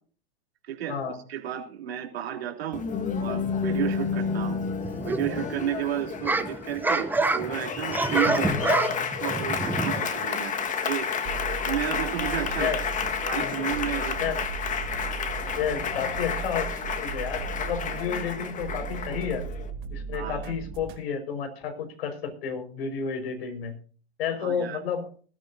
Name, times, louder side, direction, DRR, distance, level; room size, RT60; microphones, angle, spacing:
voice 1, 0.6-1.0 1.3-2.8 3.2-4.6 5.0-8.8 9.2-11.1 11.6-14.3 20.1-20.5 24.4-24.8, right 11 dB, 75° right, 1 dB, 3.4 m, -32 dB
Applause, 2.7-19.7, left 6 dB, 25° left, 1.7 m, -31 dB
sound 1, 4.8-5.5 6.0-10.3, right 3 dB, 5° right, 0.9 m, -27 dB
sound 2, 11.2-21.0, right 6 dB, 40° right, 3.5 m, -37 dB
voice 2, 15.6-16.7 17.0-19.5 19.9-23.8 24.2-25.1, left 7 dB, 70° left, 7 dB, 5.2 m, -31 dB
20.0 x 13.0 x 2.8 m, 0.41 s
hypercardioid pair, 115°, 31 cm